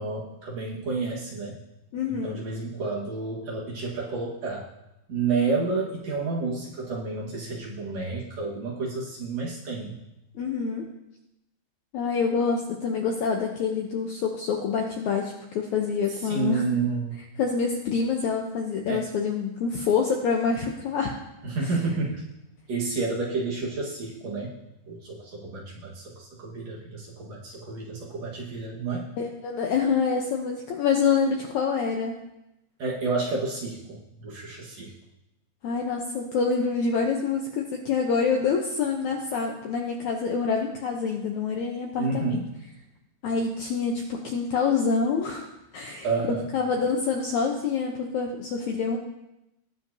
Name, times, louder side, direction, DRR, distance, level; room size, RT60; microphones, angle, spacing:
voice 1, 0.0-1.6 2.1-4.6 5.1-10.0 16.2-17.2 18.9-19.1 21.4-22.2 22.7-24.6 24.9-29.1 32.8-34.9 42.0-42.4 46.0-46.5, right 4 dB, 55° right, -4 dB, 2.4 m, -30 dB
voice 2, 1.9-2.4 10.4-10.9 11.9-16.6 17.4-21.1 29.2-32.2 35.6-42.4 43.2-49.0, left 5 dB, 75° left, 1 dB, 1.8 m, -26 dB
20.0 x 7.4 x 2.8 m, 0.89 s
omnidirectional pair, 4.3 m